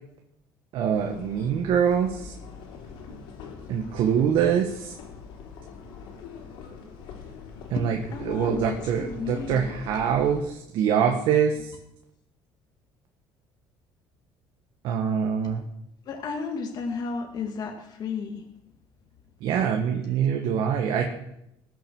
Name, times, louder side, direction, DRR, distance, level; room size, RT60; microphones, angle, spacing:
voice 1, 0.7-2.3 3.7-4.9 7.7-8.0 8.3-11.8 14.8-15.6 19.4-21.0, right 7 dB, 65° right, 2 dB, 1.8 m, -24 dB
sound 1, 0.9-10.4, left 5 dB, 80° left, 3.9 m, -43 dB
voice 2, 7.7-9.8 11.6-11.7 15.4-15.5 16.0-18.5 20.0-20.1, left 5 dB, 50° left, 1 dB, 2.1 m, -33 dB
20.0 x 7.9 x 6.3 m, 0.80 s
cardioid pair, 120°, 9 cm